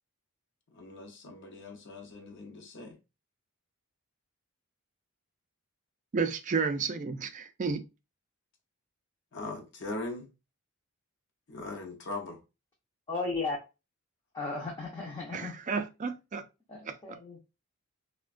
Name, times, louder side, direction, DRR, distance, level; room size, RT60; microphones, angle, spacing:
voice 1, 0.7-3.0 9.3-10.3 11.5-12.4, left 2 dB, 55° left, 0.6 m, -40 dB
voice 2, 6.1-7.8 15.3-16.4 16.9-17.0, right 5 dB, 35° right, 0.3 m, -31 dB
voice 3, 13.1-13.6 14.3-15.6 16.7-17.4, left 3 dB, 20° left, 0.5 m, -35 dB
3.3 x 2.1 x 2.4 m
head